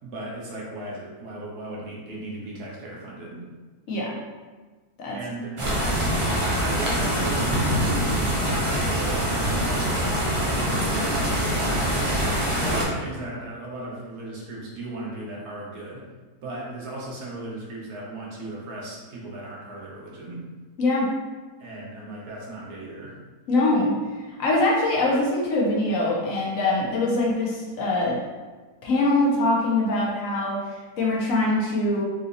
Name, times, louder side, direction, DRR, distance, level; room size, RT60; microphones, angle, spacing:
voice 1, 0.0-3.5 5.1-5.6 6.1-7.7 8.5-10.5 10.8-16.0 16.4-20.4 21.6-23.1, right 2 dB, 85° right, -4 dB, 1.4 m, -36 dB
sound 1, 5.6-12.8, equal, 45° right, 0.4 m, -24 dB
voice 2, 20.8-21.1 23.5-23.9 24.3-28.2 28.8-32.0, left 2 dB, 65° left, -3 dB, 1.0 m, -23 dB
3.9 x 2.8 x 2.5 m, 1.3 s
omnidirectional pair, 1.6 m